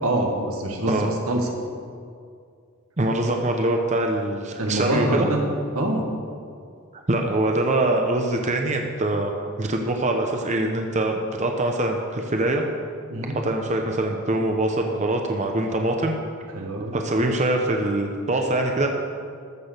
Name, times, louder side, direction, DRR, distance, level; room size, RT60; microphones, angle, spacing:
voice 1, 0.0-1.5 4.6-5.4 5.8-6.1 13.1-13.4 16.5-17.0, right 1 dB, 90° right, 1 dB, 1.8 m, -25 dB
voice 2, 3.0-5.3 7.1-9.3 9.6-12.6 13.2-16.2 16.9-18.9, right 1 dB, 35° right, 3 dB, 0.8 m, -23 dB
14.0 x 6.2 x 6.8 m, 2.2 s
head